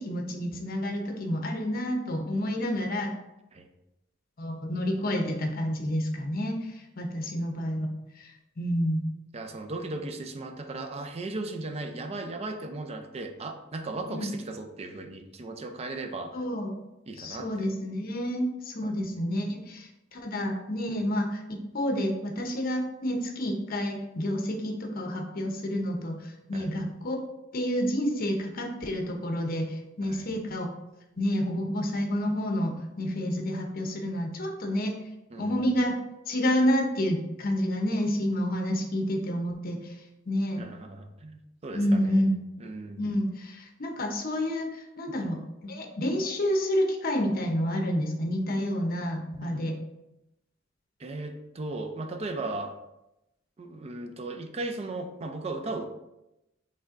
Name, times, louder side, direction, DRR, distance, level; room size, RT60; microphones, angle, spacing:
voice 1, 0.0-3.1 4.4-7.9 8.2-9.0 14.1-14.3 16.3-16.8 17.2-21.4 21.7-27.2 27.5-30.7 31.2-34.9 35.4-36.0 36.3-39.9 40.3-40.6 41.7-42.3 43.0-49.8, equal, 50° left, 3 dB, 0.7 m, -29 dB
voice 2, 9.3-16.4 17.1-17.7 18.8-18.9 19.4-19.6 20.9-21.0 26.5-26.7 30.0-30.2 35.3-35.6 40.6-42.2 42.6-43.0 45.1-45.2 49.4-49.7 51.0-52.8 53.6-55.9, right 2 dB, 30° right, 6 dB, 0.4 m, -37 dB
5.4 x 3.4 x 2.5 m, 0.91 s
head